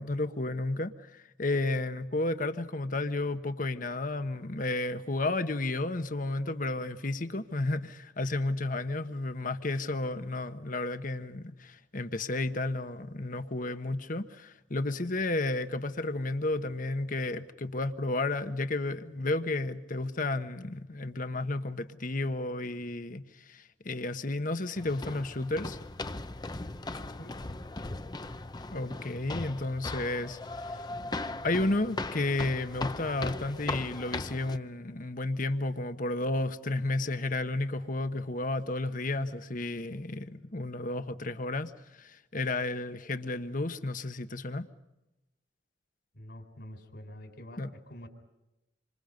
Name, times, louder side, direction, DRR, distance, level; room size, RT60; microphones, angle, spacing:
voice 1, 0.0-25.8 28.7-30.4 30.6-30.8 31.4-44.6 47.6-47.7, left 2 dB, 50° left, 1.3 m, -32 dB
sound 1, 24.8-34.6, left 2 dB, 25° left, 0.8 m, -38 dB
voice 2, 27.0-27.3 46.1-48.1, equal, 65° left, 4.2 m, -47 dB
27.5 x 26.0 x 5.3 m
head